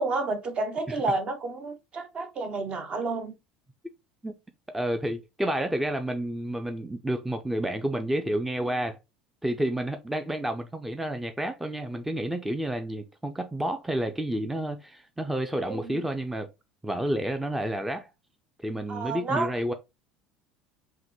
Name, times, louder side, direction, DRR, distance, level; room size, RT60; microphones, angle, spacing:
voice 1, 0.0-3.3 15.5-16.0 18.9-19.5, right 3 dB, 40° right, 0.8 m, -30 dB
voice 2, 4.7-9.0 9.4-16.5 16.8-18.1 18.6-19.7, right 1 dB, 5° right, 0.4 m, -30 dB
5.6 x 2.1 x 3.0 m
figure-of-eight pair, 70°, 3 cm